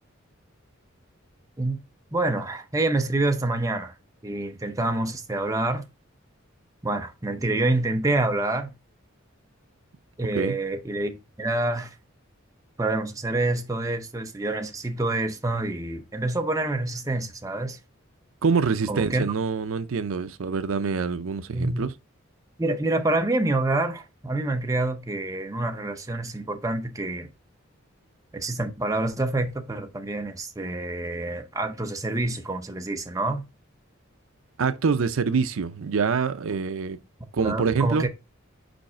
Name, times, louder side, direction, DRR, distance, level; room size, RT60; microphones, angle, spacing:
voice 1, 2.1-3.9 4.2-5.8 6.8-8.7 10.2-11.9 12.8-17.8 18.9-19.3 21.5-21.9 22.6-27.3 28.3-33.4 37.4-38.1, right 2 dB, 15° right, 0.7 m, -27 dB
voice 2, 18.4-21.9 34.6-37.0 37.3-38.1, right 5 dB, 75° right, 0.5 m, -25 dB
5.2 x 4.8 x 4.3 m
head